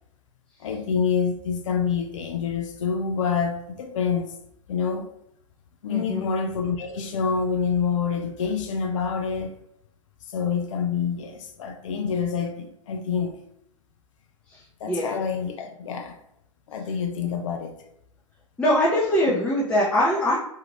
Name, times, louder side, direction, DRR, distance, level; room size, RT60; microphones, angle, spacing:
voice 1, 0.6-4.4 4.7-5.1 5.8-9.6 10.2-13.4 14.8-16.2 16.7-17.8, left 6 dB, 65° left, 0.4 m, -27 dB
voice 2, 5.9-6.3 14.5-15.1 18.6-20.4, left 1 dB, 5° left, 0.6 m, -23 dB
2.6 x 2.4 x 3.0 m
figure-of-eight pair, 100°, 17 cm